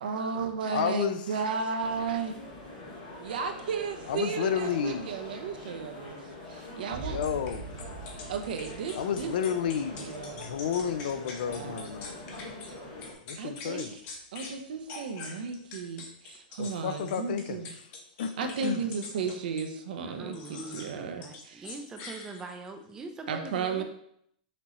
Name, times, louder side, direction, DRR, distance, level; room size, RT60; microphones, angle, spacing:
voice 1, 0.0-2.3 3.2-6.2 6.5-7.2 8.3-9.3 10.0-10.6 11.4-11.9 13.4-14.0 14.3-17.7 18.4-21.7 23.3-23.8, right 5 dB, 75° right, 5 dB, 0.7 m, -34 dB
voice 2, 0.7-1.2 4.1-5.1 7.1-7.7 8.9-12.5 13.3-13.9 16.6-17.6 18.2-18.8, left 8 dB, 70° left, 10 dB, 0.4 m, -31 dB
sound 1, 1.8-13.1, left 2 dB, 90° left, 1.9 m, -44 dB
sound 2, 6.9-14.3, right 4 dB, 55° right, 1.0 m, -46 dB
sound 3, 7.2-12.7 13.0-14.6 14.9-19.7 20.3-20.9 21.2-22.7, left 4 dB, 35° left, 0.9 m, -44 dB
voice 3, 20.0-23.8, right 3 dB, 10° right, 5 dB, 0.4 m, -43 dB
5.9 x 2.9 x 3.0 m, 0.71 s
supercardioid pair, 155°, 5 cm